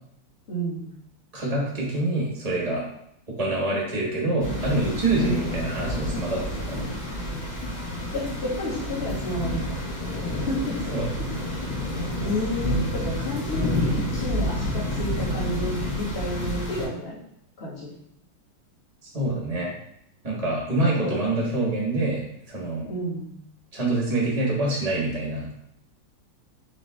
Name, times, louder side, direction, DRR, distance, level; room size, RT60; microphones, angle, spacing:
voice 1, 0.5-0.9 5.2-5.4 8.1-9.8 10.5-10.8 11.5-11.6 12.2-17.2 17.6-17.9 21.0-21.3 22.9-23.3, left 1 dB, 30° left, -8 dB, 1.8 m, -31 dB
voice 2, 1.3-2.9 3.3-6.9 10.9-11.1 19.1-19.7 20.2-22.2 22.5-22.8 23.7-25.5, right 2 dB, 25° right, -5 dB, 1.0 m, -26 dB
sound 1, 4.4-16.9, left 1 dB, 50° left, 2.1 m, -29 dB
4.0 x 3.4 x 3.4 m, 0.73 s
omnidirectional pair, 2.2 m